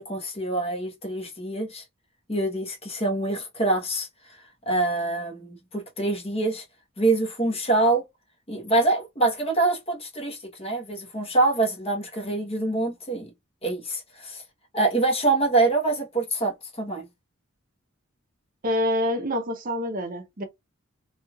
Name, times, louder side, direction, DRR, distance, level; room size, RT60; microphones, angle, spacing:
voice 1, 0.0-1.8 2.3-4.1 4.7-6.6 7.0-8.0 8.5-13.3 13.6-14.4 14.7-17.0, right 2 dB, 30° left, 1.1 m, -25 dB
voice 2, 18.6-20.4, left 1 dB, 40° right, 0.6 m, -26 dB
3.0 x 2.7 x 2.4 m
head